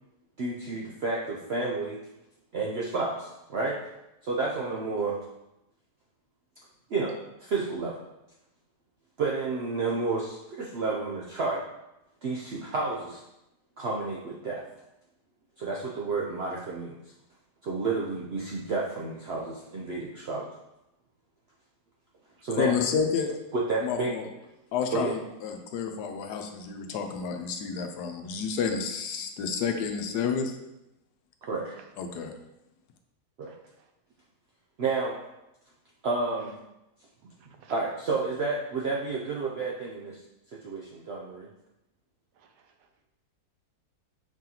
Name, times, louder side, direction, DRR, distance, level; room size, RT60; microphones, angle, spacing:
voice 1, 0.4-2.0 2.5-3.9 4.2-5.2 6.9-8.0 9.2-11.6 12.2-13.2 13.8-14.6 15.6-16.9 17.6-20.5 22.4-22.7 23.5-24.1 24.9-25.2 31.4-31.7 33.4-33.5 34.8-35.2 36.0-36.5 37.7-40.2 40.5-41.5, right 3 dB, 70° right, -4 dB, 0.6 m, -30 dB
voice 2, 22.6-23.4 23.8-24.3 24.7-30.5 32.0-32.3, left 6 dB, 80° left, 5 dB, 1.1 m, -30 dB
voice 3, 33.5-33.9 37.6-37.7 42.4-42.9, right 7 dB, 85° right, 5 dB, 1.2 m, -57 dB
4.8 x 2.9 x 3.8 m, 0.90 s
omnidirectional pair, 1.7 m